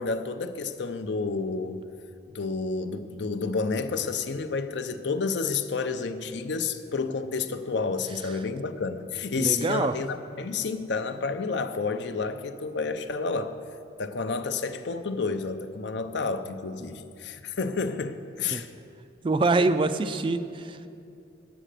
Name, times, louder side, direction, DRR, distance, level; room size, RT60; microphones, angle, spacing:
voice 1, 0.0-1.8 2.3-13.6 14.0-18.7, left 4 dB, 65° left, 9 dB, 0.6 m, -30 dB
voice 2, 9.4-9.9 18.5-18.6 19.2-20.9, right 3 dB, 25° right, 10 dB, 0.3 m, -25 dB
9.9 x 8.8 x 6.6 m, 2.6 s
head